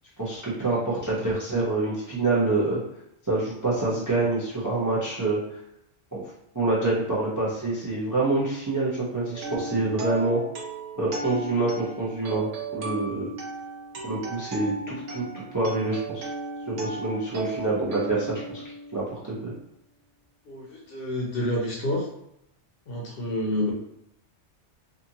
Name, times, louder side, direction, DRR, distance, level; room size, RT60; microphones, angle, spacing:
voice 1, 0.2-2.8 3.3-5.6 6.1-6.2 6.5-10.4 11.0-13.3 14.0-16.3 16.7-18.6 18.9-19.5, right 2 dB, 25° right, -6 dB, 0.5 m, -26 dB
sound 1, 9.3-19.2, right 3 dB, 80° right, 0.9 m, -36 dB
voice 2, 20.5-22.1 22.9-23.7, left 1 dB, 60° left, -2 dB, 0.7 m, -28 dB
2.6 x 2.5 x 2.8 m, 0.79 s
omnidirectional pair, 1.2 m